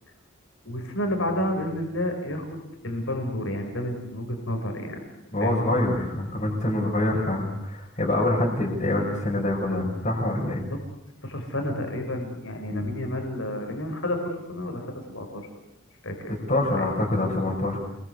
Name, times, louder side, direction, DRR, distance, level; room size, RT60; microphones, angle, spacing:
voice 1, 0.6-5.0 5.4-5.8 10.7-10.8 11.2-15.5 16.0-16.9, left 1 dB, 65° left, 4 dB, 5.4 m, -31 dB
voice 2, 5.3-10.6 12.7-12.9 16.3-17.8, left 1 dB, 35° left, -3 dB, 5.5 m, -25 dB
29.0 x 22.0 x 8.3 m, 0.86 s
head